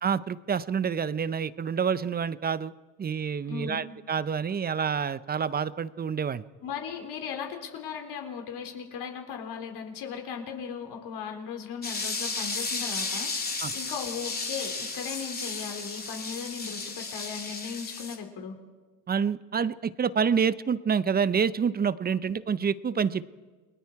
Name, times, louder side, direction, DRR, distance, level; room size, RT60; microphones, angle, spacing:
voice 1, 0.0-2.7 3.0-6.4 13.6-13.7 19.1-23.3, right 6 dB, 20° right, 17 dB, 0.5 m, -27 dB
voice 2, 3.4-3.8 6.6-18.5, left 7 dB, 50° left, 3 dB, 4.2 m, -37 dB
sound 1, 11.8-18.2, left 3 dB, 20° left, 2.9 m, -34 dB
29.5 x 21.0 x 4.7 m, 1.3 s
supercardioid pair, 100°, 50 cm